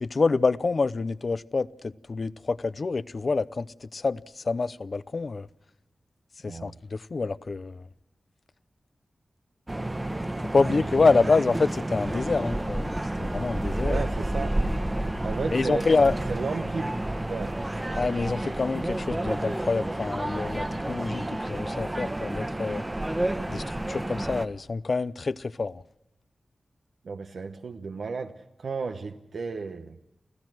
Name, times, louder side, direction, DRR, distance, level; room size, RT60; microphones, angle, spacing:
voice 1, 0.0-5.5 6.4-7.8 10.5-14.0 15.5-16.2 18.0-22.8 23.5-25.8, left 4 dB, 55° left, 0.7 m, -27 dB
voice 2, 6.5-6.8 10.7-11.2 13.8-14.6 15.2-15.9 16.3-17.0 17.3-17.6 27.0-30.0, right 4 dB, 85° right, 1.0 m, -34 dB
sound 1, 9.7-24.5, right 1 dB, 20° right, 1.3 m, -30 dB
29.0 x 15.5 x 6.2 m
cardioid pair, 60°, 0 cm